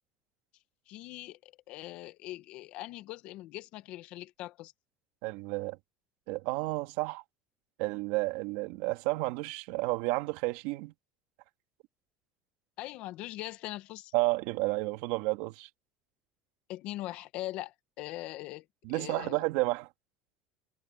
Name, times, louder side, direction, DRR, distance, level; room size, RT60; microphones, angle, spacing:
voice 1, 0.9-4.7 12.8-14.1 16.7-19.4, left 16 dB, 60° left, 1.5 m, -41 dB
voice 2, 5.2-5.8 6.3-7.2 7.8-10.9 14.1-15.7 18.8-19.9, right 22 dB, 75° right, 2.7 m, -31 dB
cardioid pair, 140°, 2 cm